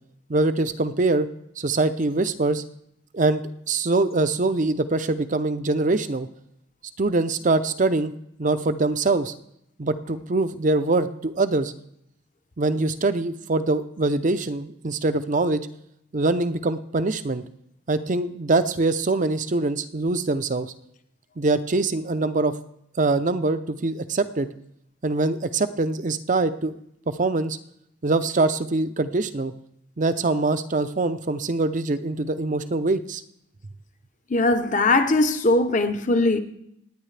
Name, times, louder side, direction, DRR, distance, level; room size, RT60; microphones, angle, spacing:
voice 1, 0.3-1.3 1.6-2.6 3.1-6.3 7.0-8.1 8.4-9.3 9.8-11.7 12.6-15.6 16.1-17.4 17.9-20.7 21.4-22.5 23.0-24.5 25.0-26.7 27.2-27.6 28.0-29.5 30.0-33.2, right 2 dB, 40° right, 0.6 m, -23 dB
voice 2, 34.3-36.4, left 2 dB, 40° left, 0.8 m, -20 dB
25.5 x 9.7 x 3.3 m
head